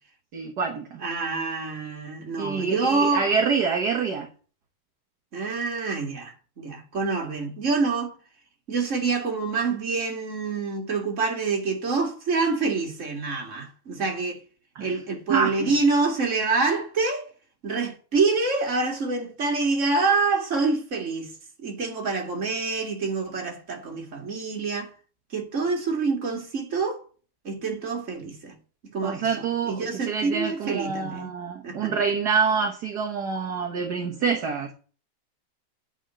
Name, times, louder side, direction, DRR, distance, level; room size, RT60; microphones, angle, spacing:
voice 1, 0.3-1.0 2.4-4.3 14.8-14.9 15.3-15.8 29.0-34.7, right 5 dB, 55° right, 1.7 m, -26 dB
voice 2, 1.0-3.3 5.3-8.1 8.7-14.4 14.8-17.3 17.6-24.9 25.3-27.0 27.4-28.6 28.9-31.3 31.6-32.0, right 4 dB, 35° right, 2.4 m, -26 dB
9.0 x 5.5 x 7.5 m
omnidirectional pair, 2.2 m